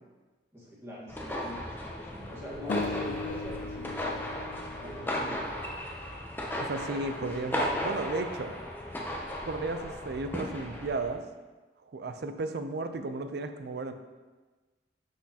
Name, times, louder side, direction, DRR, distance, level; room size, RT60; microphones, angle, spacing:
voice 1, 0.5-4.0 4.8-5.7 7.2-7.3, left 1 dB, 15° right, -6 dB, 1.4 m, -43 dB
sound 1, 1.1-11.1, left 1 dB, 10° left, 0.6 m, -36 dB
sound 2, 2.7-5.9, left 3 dB, 65° left, 0.4 m, -38 dB
voice 2, 6.6-8.5 9.4-11.2 11.9-13.9, right 3 dB, 60° right, 9 dB, 0.4 m, -34 dB
6.1 x 6.0 x 2.8 m, 1.3 s
head